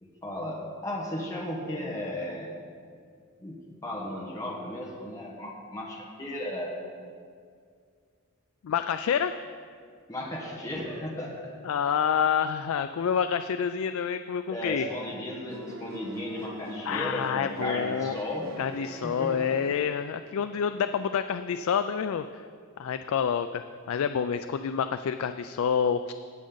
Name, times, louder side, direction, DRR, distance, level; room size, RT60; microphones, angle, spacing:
voice 1, 0.0-2.5 3.4-6.7 10.1-11.5 14.5-18.5 19.0-19.4, left 1 dB, 15° left, -4 dB, 1.4 m, -35 dB
voice 2, 8.6-9.4 11.6-14.9 16.9-18.2 18.6-22.4 22.8-23.6 23.9-26.1, left 7 dB, 75° left, 10 dB, 0.3 m, -28 dB
sound 1, 15.5-20.4, right 1 dB, 70° right, 0.9 m, -43 dB
19.0 x 6.3 x 4.0 m, 2.1 s
head